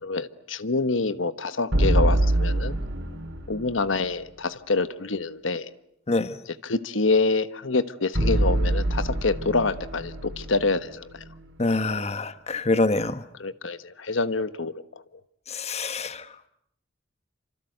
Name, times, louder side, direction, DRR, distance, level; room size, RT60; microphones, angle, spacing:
voice 1, 0.0-2.8 3.5-5.7 6.5-11.2 13.4-14.7, left 3 dB, 85° left, 12 dB, 1.3 m, -26 dB
sound 1, 1.7-3.9 8.1-11.4, right 1 dB, 75° right, 3.9 m, -25 dB
voice 2, 11.6-13.2 15.5-16.2, left 2 dB, 35° left, 11 dB, 1.2 m, -25 dB
28.5 x 26.5 x 8.0 m, 0.72 s
head